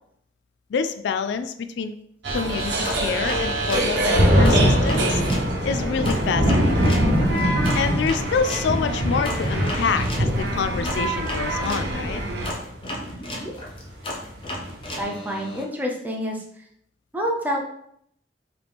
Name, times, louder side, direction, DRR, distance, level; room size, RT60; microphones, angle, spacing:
voice 1, 0.7-1.9 2.3-5.2 5.6-7.0 7.7-12.2, left 5 dB, 75° left, 10 dB, 0.3 m, -27 dB
sound 1, 2.2-12.5, right 2 dB, 75° right, 1.1 m, -27 dB
sound 2, 2.8-5.5 6.0-11.9 12.4-15.6, left 1 dB, 30° left, 0.8 m, -34 dB
sound 3, 3.4-15.0, equal, 60° right, 1.7 m, -23 dB
voice 2, 15.0-16.6 17.1-17.6, equal, 10° right, -1 dB, 0.7 m, -28 dB
4.9 x 3.2 x 3.5 m, 0.70 s
head